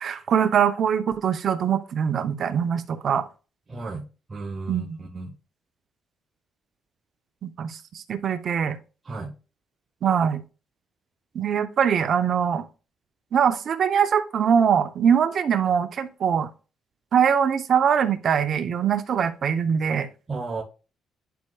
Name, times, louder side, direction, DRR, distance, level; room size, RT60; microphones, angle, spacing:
voice 1, 0.0-3.3 4.7-5.0 7.4-8.8 10.0-10.4 11.3-12.6 13.3-16.5 17.1-20.1, right 7 dB, 60° right, 0.8 m, -22 dB
voice 2, 3.7-5.3 9.0-9.3 20.3-20.6, right 3 dB, 30° right, 1.7 m, -34 dB
10.5 x 4.7 x 2.4 m
cardioid pair, 90°, 0 cm